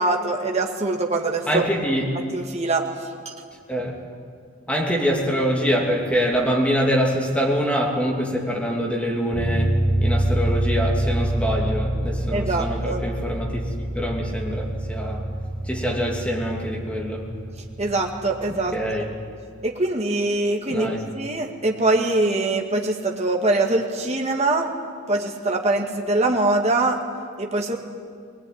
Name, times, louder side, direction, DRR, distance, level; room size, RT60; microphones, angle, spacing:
voice 1, 0.0-1.6 2.3-2.8 12.3-13.0 17.8-18.8 19.6-24.7 25.1-27.0 27.4-27.8, right 2 dB, 30° right, 1 dB, 2.0 m, -23 dB
voice 2, 1.5-2.1 3.7-3.9 4.7-13.6 13.9-15.3 15.6-17.3 18.7-19.1 20.7-21.0, equal, 5° left, -2 dB, 2.9 m, -24 dB
sound 1, 9.3-19.1, right 1 dB, 30° left, 7.0 m, -26 dB
21.0 x 20.0 x 9.6 m, 2.2 s
head